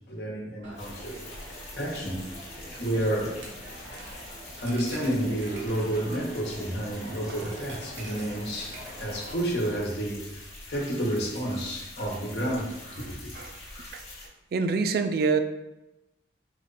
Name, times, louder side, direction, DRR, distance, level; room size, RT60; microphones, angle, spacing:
voice 1, 0.1-1.5 1.8-2.3 2.8-3.4 4.6-10.2 10.7-13.3, right 1 dB, 65° left, -2 dB, 1.1 m, -30 dB
Coin (dropping), 0.6-9.8, right 1 dB, 80° right, 0.9 m, -45 dB
sound 1, 0.8-14.3, left 2 dB, 40° left, 1.4 m, -45 dB
voice 2, 14.5-15.4, right 4 dB, 55° right, 8 dB, 0.3 m, -26 dB
4.8 x 2.5 x 4.0 m, 0.98 s
head